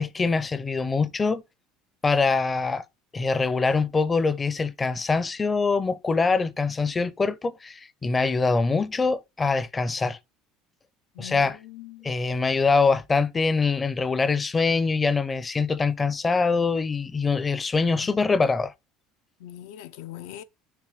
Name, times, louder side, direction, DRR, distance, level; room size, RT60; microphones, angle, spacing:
voice 1, 0.0-1.4 2.0-2.8 3.1-10.2 11.2-11.6 12.0-18.7, left 4 dB, 15° left, 0.5 m, -24 dB
voice 2, 11.2-12.1 18.0-18.1 19.4-20.4, left 12 dB, 90° left, 0.6 m, -41 dB
6.7 x 3.3 x 4.9 m
cardioid pair, 170°, 0 cm